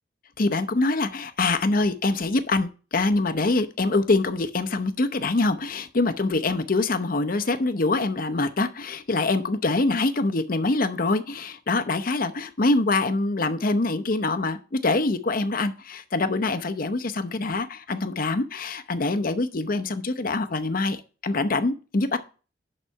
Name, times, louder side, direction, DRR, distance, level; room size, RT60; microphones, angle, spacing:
voice 1, 0.4-22.2, left 3 dB, 50° left, 9 dB, 0.7 m, -24 dB
11.0 x 4.0 x 5.6 m, 0.36 s
head